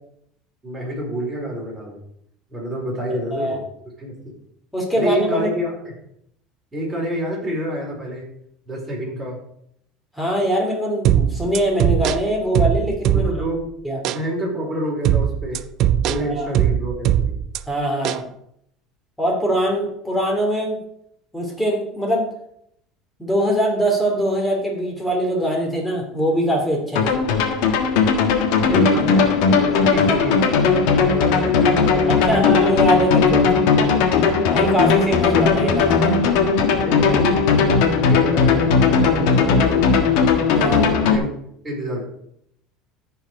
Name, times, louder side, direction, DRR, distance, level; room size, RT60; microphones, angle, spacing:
voice 1, 0.6-2.0 2.5-3.6 4.0-4.1 4.9-5.9 6.7-8.2 8.7-9.4 13.1-13.6 14.1-15.6 16.1-17.4 28.6-30.4 31.1-32.6 36.7-37.8 38.1-40.1 40.8-41.3 41.6-42.0, equal, 15° right, -4 dB, 4.3 m, -27 dB
voice 2, 4.7-5.5 10.1-13.3 13.8-14.0 16.2-16.5 17.7-18.2 19.2-20.8 21.3-22.3 23.2-27.2 32.1-33.5 34.5-36.2 40.6-40.9, equal, 5° left, -1 dB, 2.6 m, -22 dB
sound 1, 11.0-13.6 14.0-14.2 15.0-17.6 18.0-18.2, right 10 dB, 55° right, 0.4 m, -20 dB
sound 2, 27.0-41.2, left 5 dB, 75° left, 1.4 m, -17 dB
14.0 x 4.7 x 4.7 m, 0.73 s
cardioid pair, 135°, 0 cm